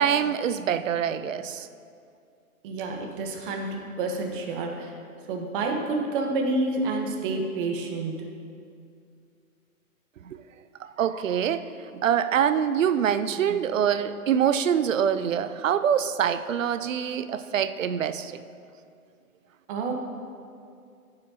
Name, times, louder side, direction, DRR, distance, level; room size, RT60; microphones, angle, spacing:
voice 1, 0.0-1.7 10.3-10.4 10.8-11.6 11.9-18.4, right 8 dB, 65° right, 12 dB, 0.6 m, -25 dB
voice 2, 2.6-4.9 5.3-8.3 19.7-19.9, right 3 dB, 35° right, 2 dB, 1.4 m, -29 dB
15.0 x 7.7 x 2.9 m, 2.4 s
figure-of-eight pair, 125°, 44 cm